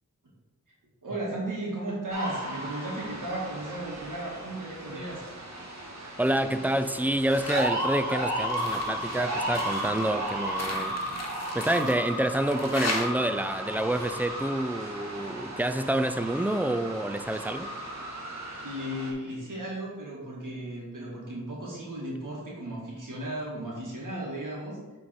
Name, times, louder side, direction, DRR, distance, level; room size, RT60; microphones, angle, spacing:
voice 1, 1.0-5.2 18.6-24.8, right 1 dB, 80° right, -4 dB, 1.7 m, -35 dB
sound 1, 2.1-19.1, right 1 dB, 60° right, 1.5 m, -34 dB
voice 2, 6.2-11.0 11.5-17.7, right 1 dB, 5° right, 10 dB, 0.4 m, -28 dB
sound 2, 7.3-7.7 8.1-13.1, left 2 dB, 55° left, 1.2 m, -37 dB
7.6 x 3.7 x 4.3 m, 1.3 s
wide cardioid pair, 60°, 31 cm